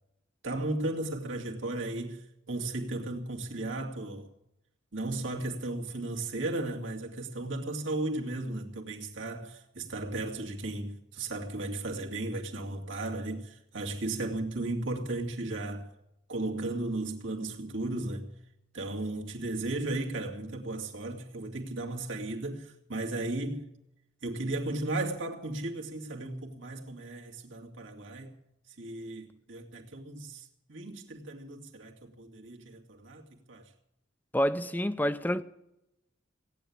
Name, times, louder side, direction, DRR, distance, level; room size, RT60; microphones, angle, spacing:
voice 1, 0.4-4.3 4.9-15.9 16.3-18.3 18.7-23.7 24.2-28.4 28.8-33.7, right 2 dB, 75° right, 2.4 m, -35 dB
voice 2, 34.3-35.4, equal, 10° left, 0.5 m, -28 dB
17.5 x 9.5 x 8.7 m
head